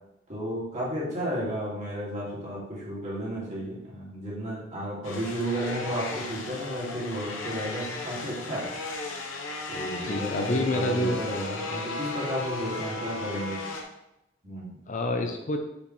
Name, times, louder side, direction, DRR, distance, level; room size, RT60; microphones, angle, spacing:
voice 1, 0.3-8.7 9.7-13.7 14.4-14.8, equal, 35° right, -6 dB, 2.1 m, -33 dB
sound 1, 5.0-13.8, left 3 dB, 90° left, 1.0 m, -35 dB
voice 2, 10.1-11.2 14.9-15.6, left 1 dB, 40° left, 5 dB, 0.5 m, -27 dB
6.8 x 4.8 x 3.1 m, 0.86 s
head